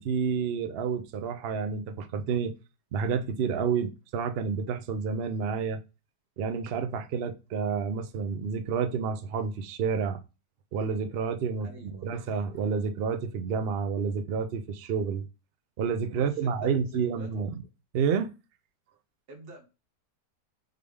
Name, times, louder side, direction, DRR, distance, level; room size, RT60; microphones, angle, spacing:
voice 1, 0.0-2.5 2.9-5.8 6.4-10.2 10.7-15.2 15.8-17.6 17.9-18.3, right 6 dB, 90° right, 0.5 m, -29 dB
voice 2, 11.6-12.1 16.1-17.4 19.3-19.7, right 1 dB, 65° right, 1.9 m, -46 dB
3.8 x 3.3 x 3.3 m
omnidirectional pair, 1.8 m